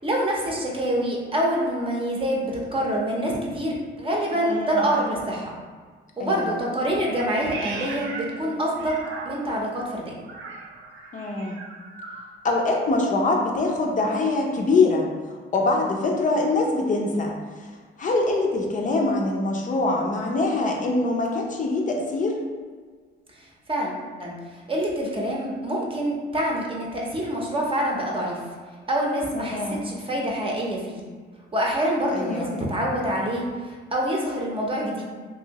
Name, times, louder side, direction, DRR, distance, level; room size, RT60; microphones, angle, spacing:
voice 1, 0.0-5.5 6.2-8.9 9.2-10.2 18.9-19.0 23.7-28.4 28.9-31.0 31.5-35.0, right 1 dB, 25° right, -2 dB, 0.7 m, -26 dB
voice 2, 4.3-4.8 6.2-6.5 11.1-11.6 12.4-15.1 15.5-17.3 18.0-22.4 29.3-29.8 32.1-32.5, left 3 dB, 40° left, 0 dB, 0.5 m, -23 dB
Meow, 7.1-9.7 10.2-12.3, right 3 dB, 75° right, 0.5 m, -37 dB
2.7 x 2.7 x 2.9 m, 1.5 s
cardioid pair, 90°, 20 cm